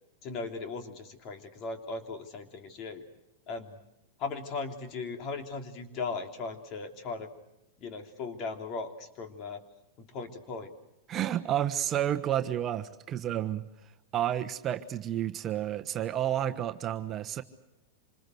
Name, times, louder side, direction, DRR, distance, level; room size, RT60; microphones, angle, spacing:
voice 1, 0.2-3.0 3.5-3.8 4.2-7.3 7.8-9.6 10.0-10.7, left 4 dB, 40° left, 6 dB, 3.2 m, -38 dB
voice 2, 11.1-13.6 14.1-17.4, right 11 dB, 30° right, 7 dB, 1.2 m, -30 dB
26.5 x 20.5 x 7.9 m, 0.91 s
hypercardioid pair, 125°, 0 cm